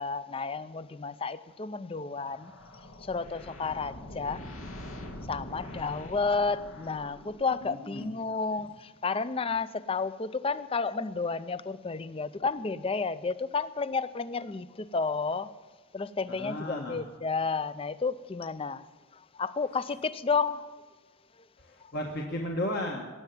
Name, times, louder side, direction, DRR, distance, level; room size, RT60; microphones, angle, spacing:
voice 1, 0.0-2.5 3.1-4.4 5.3-15.5 15.9-18.8 19.3-20.7, left 4 dB, 25° left, 0.4 m, -31 dB
sound 1, 2.2-7.6, left 1 dB, 80° left, 1.7 m, -44 dB
voice 2, 7.6-8.1 16.4-17.0 21.6-23.0, left 1 dB, 50° left, 1.3 m, -34 dB
18.0 x 6.9 x 9.2 m
head